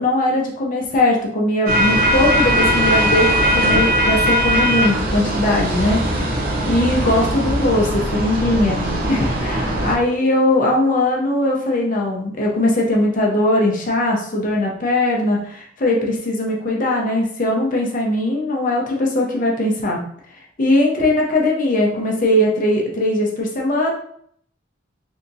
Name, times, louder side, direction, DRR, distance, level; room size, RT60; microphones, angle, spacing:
voice 1, 0.0-20.0 20.6-23.9, left 1 dB, 45° left, -1 dB, 0.6 m, -20 dB
sound 1, 1.7-10.0, equal, 50° right, 0.7 m, -19 dB
3.4 x 2.8 x 2.6 m, 0.65 s
head